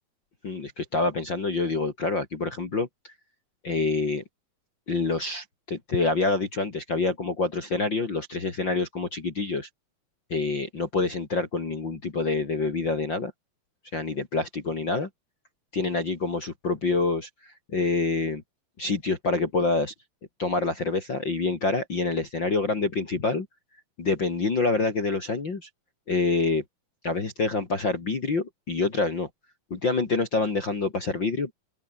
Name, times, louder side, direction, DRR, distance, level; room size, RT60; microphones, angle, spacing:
voice 1, 0.4-3.1 3.6-4.2 4.9-9.7 10.3-13.3 13.9-15.1 15.7-18.4 18.8-19.9 20.4-23.5 24.0-25.7 26.1-26.6 27.0-29.3 29.7-31.5, left 3 dB, 35° left, 3.1 m, -27 dB
open air
omnidirectional pair, 4.3 m